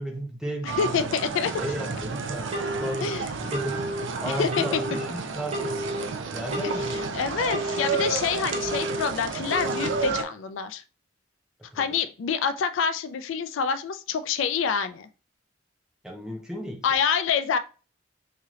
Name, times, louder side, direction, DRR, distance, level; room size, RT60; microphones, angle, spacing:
voice 1, 0.0-3.9 4.2-5.8 6.3-7.0 11.7-11.8 16.0-16.8, right 1 dB, 5° right, 2 dB, 0.7 m, -34 dB
voice 2, 0.6-1.5 3.0-3.3 4.4-4.8 6.6-6.7 7.1-10.8 11.8-15.1 16.8-17.6, left 6 dB, 75° left, 12 dB, 0.3 m, -27 dB
sound 1, 0.7-10.2, right 5 dB, 70° right, 0.5 m, -31 dB
Telephone, 2.5-3.0 3.5-4.0 4.5-5.0 5.5-6.0 6.5-7.0 7.5-8.0 8.5-9.0 9.5-10.0, equal, 35° right, 0.9 m, -31 dB
3.2 x 2.8 x 3.6 m, 0.35 s
head